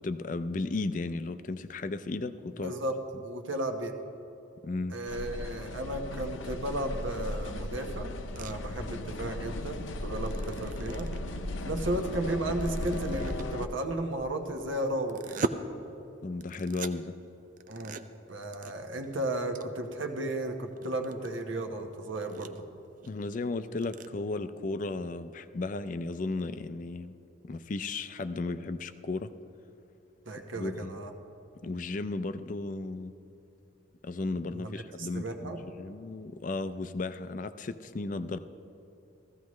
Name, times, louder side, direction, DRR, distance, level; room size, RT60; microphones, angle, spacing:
voice 1, 0.0-2.7 4.6-5.0 16.2-17.1 23.0-27.1 27.4-29.3 30.5-31.0 31.6-33.1 34.0-38.4, left 3 dB, 40° left, 11 dB, 0.4 m, -34 dB
voice 2, 2.6-2.9 3.2-3.9 4.9-11.1 11.6-15.5 17.7-18.0 18.3-22.6 30.3-31.1 34.5-34.7 35.0-35.6, right 1 dB, 75° right, 5 dB, 1.1 m, -34 dB
sound 1, 5.1-13.7, left 1 dB, 75° left, 0.7 m, -36 dB
sound 2, 8.4-8.5 10.2-11.4 12.4-13.5 15.0-15.5 16.4-16.9 17.6-18.0 18.4-18.7 19.0-19.1 19.5-19.6 20.0-20.1 20.6-21.3 21.8-21.9 22.2-22.6 23.0-23.1 23.3-23.4 23.7-24.1, right 4 dB, 40° right, 0.4 m, -37 dB
15.5 x 14.5 x 3.1 m, 2.9 s
head